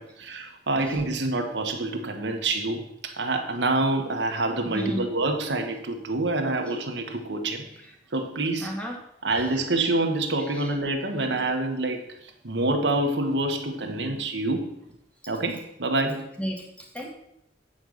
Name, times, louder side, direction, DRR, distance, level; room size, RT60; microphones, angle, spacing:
voice 1, 0.0-7.7 8.1-8.7 9.2-14.7 15.3-16.3, right 2 dB, 80° right, 4 dB, 1.3 m, -27 dB
voice 2, 4.6-5.1 7.8-7.9 8.6-9.0 9.4-9.5 10.4-10.7 16.4-17.1, equal, 5° left, 0 dB, 1.8 m, -34 dB
8.9 x 5.3 x 6.4 m, 0.78 s
head